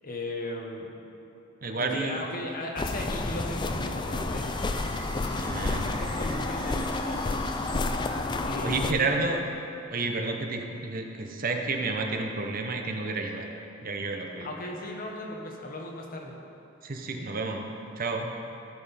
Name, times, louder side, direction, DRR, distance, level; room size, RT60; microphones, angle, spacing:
voice 1, 0.0-0.9 1.7-4.5 5.2-7.3 8.4-9.4 10.0-10.3 14.4-16.3, left 1 dB, 45° left, 0 dB, 1.1 m, -37 dB
voice 2, 1.6-2.3 5.4-5.9 8.6-9.4 9.9-13.5 13.8-14.5 16.8-17.7 18.0-18.3, right 3 dB, 45° right, 3 dB, 0.7 m, -30 dB
sound 1, 2.8-8.9, left 2 dB, 20° left, 0.4 m, -30 dB
sound 2, 3.1-9.1, right 4 dB, 90° right, 0.9 m, -47 dB
14.0 x 6.0 x 4.2 m, 2.8 s
head